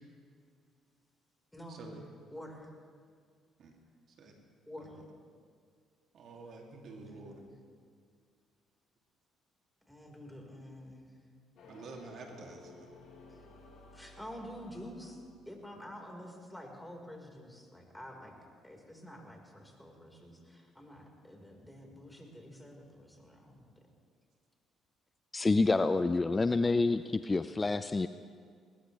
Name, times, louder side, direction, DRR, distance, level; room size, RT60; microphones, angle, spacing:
voice 1, 1.7-2.0 3.6-3.7 4.2-4.3 4.8-5.0 6.1-7.4 11.7-12.9, right 3 dB, 60° right, 1 dB, 2.6 m, -49 dB
voice 2, 2.3-2.7 4.7-5.0 7.0-7.5 9.9-11.1 13.9-15.2 15.5-18.3 18.6-23.7, equal, 5° left, 0 dB, 4.4 m, -48 dB
sound 1, 11.6-15.7, left 2 dB, 60° left, 3.8 m, -55 dB
voice 3, 25.3-28.1, left 3 dB, 25° left, 12 dB, 0.5 m, -28 dB
20.0 x 20.0 x 3.3 m, 2.1 s
hypercardioid pair, 55°, 0 cm